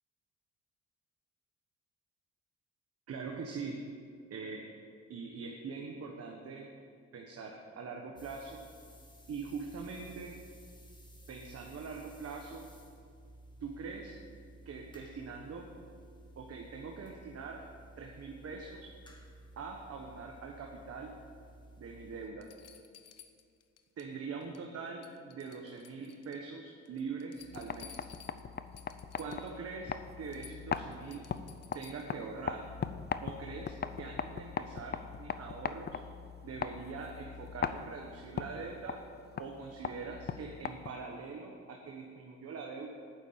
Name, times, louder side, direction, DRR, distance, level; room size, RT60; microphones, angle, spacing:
voice 1, 3.1-3.8 4.3-4.7 5.1-6.7 7.1-8.6 9.3-10.4 11.3-12.7 13.6-14.2 14.6-15.8 16.4-17.6 18.0-18.9 19.6-21.1 21.8-22.5 24.0-28.0 29.2-31.2 31.7-32.7 33.2-36.0 36.4-39.1 39.4-42.9, right 4 dB, 55° right, 2 dB, 1.2 m, -43 dB
sound 1, 8.2-22.3, right 1 dB, 15° left, 1.9 m, -55 dB
sound 2, 21.7-21.8 22.4-24.1 24.4-24.8 25.0-26.5 26.9-29.6 29.9-30.0 30.3-32.2 33.9-34.0, left 9 dB, 55° left, 0.9 m, -56 dB
sound 3, 27.4-41.2, left 6 dB, 35° left, 0.5 m, -40 dB
9.4 x 7.3 x 8.6 m, 2.3 s
cardioid pair, 90°, 30 cm